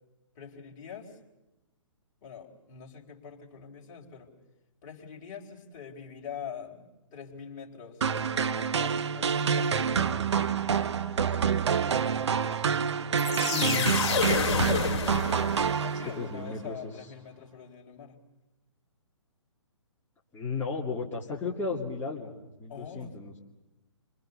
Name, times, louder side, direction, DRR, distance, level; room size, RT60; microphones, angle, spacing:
voice 1, 0.3-1.2 2.2-4.3 4.8-10.3 15.8-18.2 22.7-23.1, left 7 dB, 35° left, 1 dB, 4.1 m, -44 dB
sound 1, 8.0-16.4, right 7 dB, 60° right, 1.2 m, -27 dB
sound 2, 13.2-16.0, left 6 dB, 55° left, 3.0 m, -29 dB
voice 2, 13.5-14.2 15.9-16.8 20.3-23.4, left 4 dB, 15° left, -5 dB, 2.5 m, -34 dB
28.5 x 25.0 x 6.9 m, 1.0 s
figure-of-eight pair, 135°, 16 cm